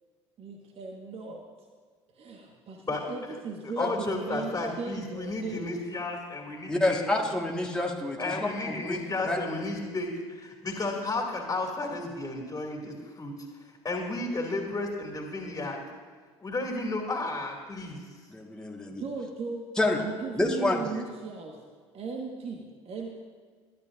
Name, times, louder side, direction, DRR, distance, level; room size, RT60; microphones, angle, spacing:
voice 1, 0.4-1.4 2.1-5.8 18.9-19.7 20.0-21.6 21.9-23.2, right 4 dB, 40° right, 1 dB, 1.5 m, -37 dB
voice 2, 3.6-7.0 8.2-13.3 13.8-15.8 16.4-18.0, left 2 dB, 20° left, -1 dB, 2.4 m, -33 dB
voice 3, 6.7-9.4 18.3-19.0 19.8-20.0 20.3-21.0, left 2 dB, 5° left, -1 dB, 1.6 m, -28 dB
21.0 x 12.0 x 2.6 m, 1.5 s
figure-of-eight pair, 65°, 15 cm